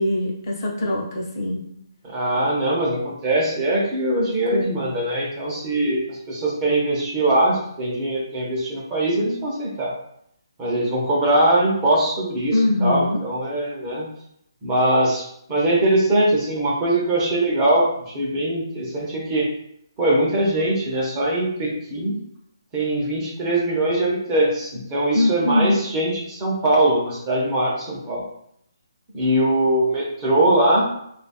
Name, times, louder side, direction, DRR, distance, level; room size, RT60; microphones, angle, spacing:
voice 1, 0.0-1.6 4.5-4.7 12.5-13.2 25.1-25.8, left 1 dB, 40° left, -2 dB, 1.1 m, -22 dB
voice 2, 2.0-9.9 10.6-14.1 14.6-19.5 20.0-22.2 22.7-28.2 29.1-30.9, right 1 dB, 20° right, -4 dB, 0.9 m, -21 dB
3.0 x 2.5 x 4.2 m, 0.73 s
hypercardioid pair, 160°, 2 cm